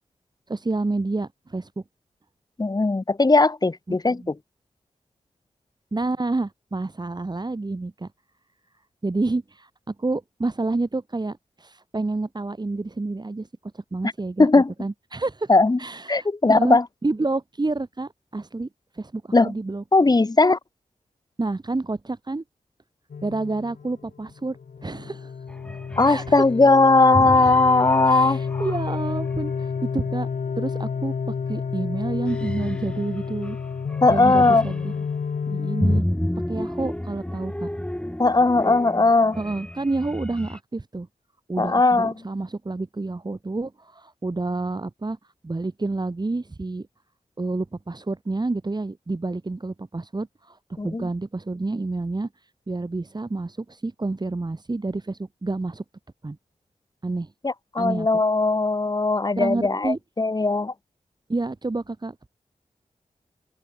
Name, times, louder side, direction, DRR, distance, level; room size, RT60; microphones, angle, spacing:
voice 1, 0.5-1.8 3.9-4.3 5.9-8.1 9.0-13.5 13.7-14.5 14.8-15.5 15.8-18.7 18.9-19.8 21.4-22.4 23.2-25.4 26.1-26.4 28.0-30.3 30.6-33.6 34.1-34.9 35.4-36.1 36.5-37.7 39.4-41.1 41.5-45.2 45.4-46.9 47.4-55.8 56.2-56.4 57.0-57.3 57.8-58.1 59.4-60.0 61.3-62.3, right 2 dB, 30° right, 2.2 m, -29 dB
voice 2, 2.6-4.4 14.4-14.7 15.5-15.8 16.1-16.8 19.3-19.5 19.9-20.6 26.0-28.7 34.0-34.6 38.2-39.4 41.6-42.1 50.8-51.1 57.4-60.7, left 3 dB, 30° left, 1.3 m, -18 dB
sound 1, 23.1-36.0, left 6 dB, 80° left, 3.1 m, -30 dB
sound 2, 25.5-26.3 27.1-29.8 31.4-31.7 32.0-35.0 35.8-40.6, left 1 dB, 5° left, 5.2 m, -31 dB
open air
cardioid pair, 65°, 14 cm